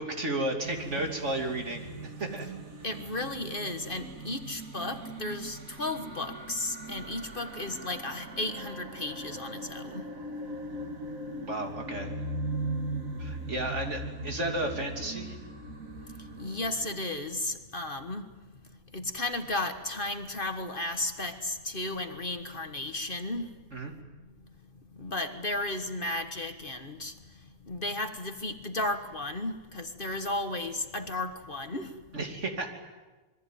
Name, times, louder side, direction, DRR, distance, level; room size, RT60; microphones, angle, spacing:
voice 1, 0.0-2.5 11.4-12.1 13.2-15.4 23.7-23.9 32.1-32.7, right 1 dB, 60° right, 3 dB, 3.3 m, -33 dB
sound 1, 0.6-17.0, right 1 dB, 80° right, 2.4 m, -39 dB
voice 2, 2.8-10.0 16.4-18.3 18.9-23.5 25.0-27.1 27.7-32.0, left 2 dB, 40° left, 7 dB, 1.6 m, -34 dB
26.5 x 22.5 x 9.3 m, 1.2 s
omnidirectional pair, 1.4 m